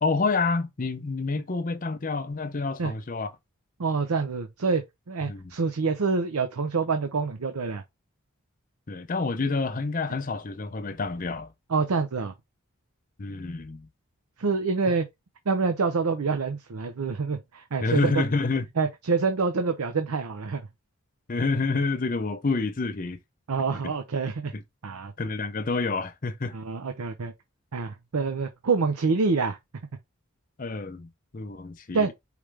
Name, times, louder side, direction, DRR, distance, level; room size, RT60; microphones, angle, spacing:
voice 1, 0.0-3.3 5.3-5.5 8.9-11.5 13.2-13.9 17.8-18.7 21.3-23.2 24.5-24.6 25.2-26.5 30.6-32.1, left 3 dB, 40° left, 0.6 m, -28 dB
voice 2, 3.8-7.8 11.7-12.3 14.4-15.1 15.5-18.2 18.8-20.6 23.5-24.5 24.8-25.1 26.5-27.3 27.7-29.6 31.9-32.1, right 4 dB, 90° right, 0.6 m, -26 dB
5.0 x 3.2 x 3.3 m
head